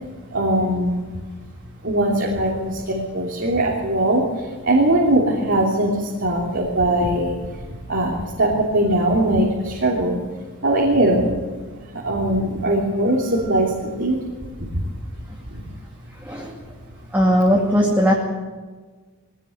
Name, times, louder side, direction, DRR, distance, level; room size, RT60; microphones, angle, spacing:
voice 1, 0.3-1.2 1.8-10.2 10.6-11.4 11.8-14.2 14.6-14.8 15.5-15.6, right 1 dB, 55° right, -3 dB, 3.1 m, -21 dB
voice 2, 16.2-16.5 17.1-18.1, equal, 10° right, -2 dB, 2.4 m, -18 dB
22.0 x 17.0 x 8.1 m, 1.4 s
head